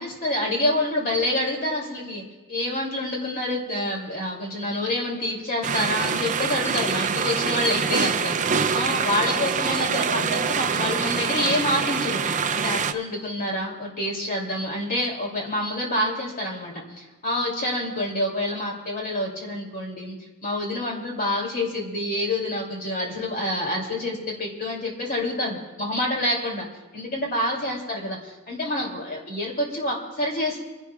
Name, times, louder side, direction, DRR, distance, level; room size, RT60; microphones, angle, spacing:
voice 1, 0.0-2.2 2.5-20.2 20.4-26.6 26.9-30.6, left 1 dB, 40° left, -1 dB, 2.8 m, -27 dB
sound 1, 5.6-12.9, right 6 dB, 35° right, 0.5 m, -25 dB
29.5 x 11.0 x 2.4 m, 1.2 s
head